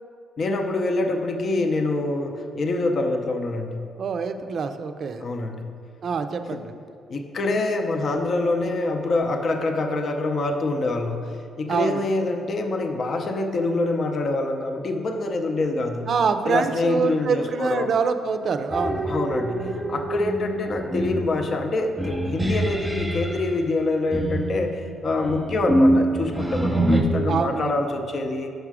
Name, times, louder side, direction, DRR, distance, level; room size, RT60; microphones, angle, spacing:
voice 1, 0.4-3.9 5.2-5.7 6.5-6.6 7.1-16.1 16.5-17.9 19.1-28.5, left 2 dB, 50° left, 4 dB, 0.6 m, -25 dB
voice 2, 4.0-5.2 6.0-6.7 11.7-12.0 16.1-19.1 27.3-27.8, right 5 dB, 55° right, 8 dB, 0.4 m, -25 dB
sound 1, 18.7-23.4 24.1-27.0, right 1 dB, 10° right, 0.8 m, -25 dB
6.5 x 4.9 x 4.8 m, 2.5 s
cardioid pair, 90°, 0 cm